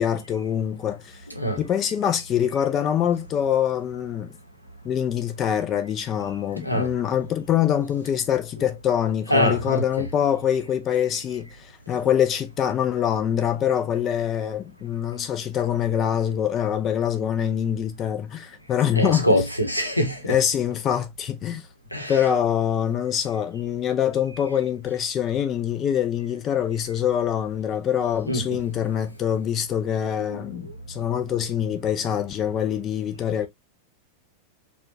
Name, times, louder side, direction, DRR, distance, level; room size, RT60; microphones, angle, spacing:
voice 1, 0.0-1.2 1.6-4.3 4.8-19.3 20.3-21.7 22.1-33.5, left 9 dB, 30° left, 0.4 m, -24 dB
voice 2, 6.6-6.9 9.3-9.8 19.0-20.4 21.9-22.2 28.3-28.6 30.0-30.6, equal, 90° left, 0.8 m, -24 dB
4.3 x 2.3 x 2.5 m
figure-of-eight pair, 90°, 0 cm